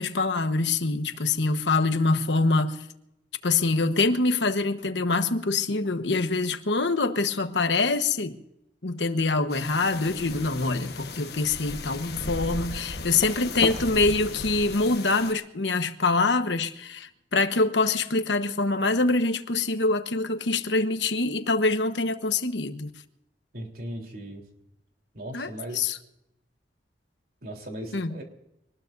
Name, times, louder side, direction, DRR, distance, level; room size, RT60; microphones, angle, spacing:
voice 1, 0.0-2.9 3.4-8.4 8.8-22.9 25.3-26.0 27.9-28.1, left 3 dB, 85° left, 1.2 m, -25 dB
sound 1, 9.5-15.3, left 3 dB, 60° left, 1.3 m, -35 dB
voice 2, 23.5-24.4 25.1-25.8 27.4-28.2, right 1 dB, 55° right, 3.6 m, -37 dB
24.5 x 20.0 x 2.6 m
head